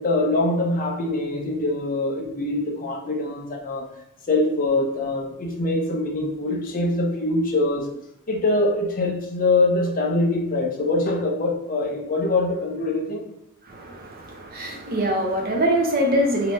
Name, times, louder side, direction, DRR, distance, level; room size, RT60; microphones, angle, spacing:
voice 1, 0.0-3.9 4.3-7.9 8.3-13.2, left 2 dB, 40° left, 1 dB, 0.6 m, -23 dB
voice 2, 13.7-16.5, equal, 45° right, 1 dB, 0.6 m, -23 dB
3.2 x 2.9 x 2.9 m, 0.79 s
head